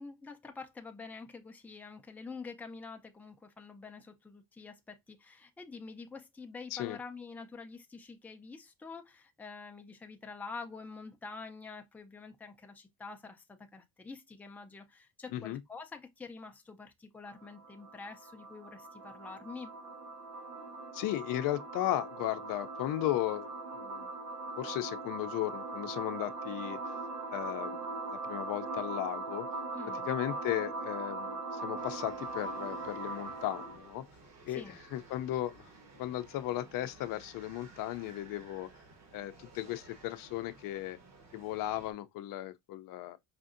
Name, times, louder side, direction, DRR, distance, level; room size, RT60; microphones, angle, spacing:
voice 1, 0.0-19.7 29.7-30.1 34.5-34.8, left 4 dB, 5° left, 0.4 m, -47 dB
sound 1, 17.2-33.9, right 3 dB, 70° right, 0.8 m, -40 dB
voice 2, 20.9-23.5 23.7-24.1 24.6-26.8 27.3-29.5 30.1-34.0 34.4-34.6 34.9-35.7 36.0-38.7 39.1-41.0 41.3-43.2, left 14 dB, 75° left, 0.5 m, -36 dB
sound 2, 31.8-41.9, right 3 dB, 50° right, 1.2 m, -56 dB
4.9 x 2.6 x 2.5 m
cardioid pair, 140°, 34 cm